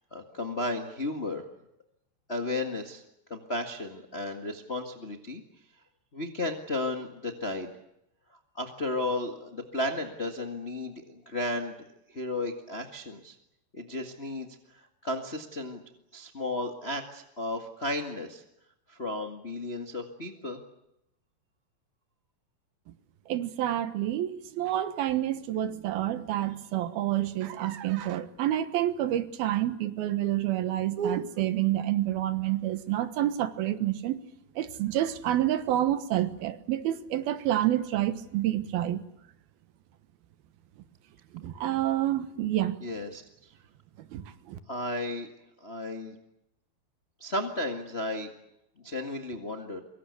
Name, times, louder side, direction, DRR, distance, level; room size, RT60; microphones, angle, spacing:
voice 1, 0.1-1.4 2.3-3.0 3.3-5.4 6.1-7.7 8.5-11.8 12.1-13.3 13.7-15.8 16.1-18.4 18.9-20.6 42.8-43.5 44.7-45.3 45.6-46.2 47.2-48.3 48.8-49.8, left 1 dB, 35° left, 0.9 m, -34 dB
voice 2, 23.3-34.2 34.6-39.0 41.4-42.8 44.1-44.6, right 13 dB, 75° right, 3.1 m, -28 dB
24.5 x 23.0 x 8.4 m
omnidirectional pair, 4.5 m